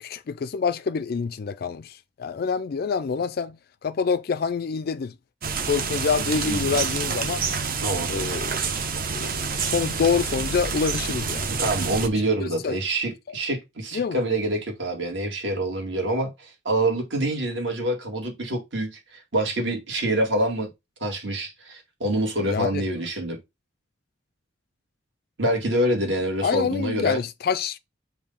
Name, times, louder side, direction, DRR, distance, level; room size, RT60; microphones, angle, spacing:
voice 1, 0.0-3.6 3.8-5.1 5.7-7.4 8.1-8.6 9.1-11.5 12.4-12.8 13.9-14.2 22.5-22.8 26.4-27.8, left 5 dB, 50° left, 0.4 m, -26 dB
sound 1, 5.4-12.1, right 5 dB, 45° right, 0.8 m, -28 dB
voice 2, 11.6-20.7 21.0-23.4 25.4-27.2, right 1 dB, 65° right, 2.2 m, -26 dB
6.8 x 2.7 x 5.6 m
head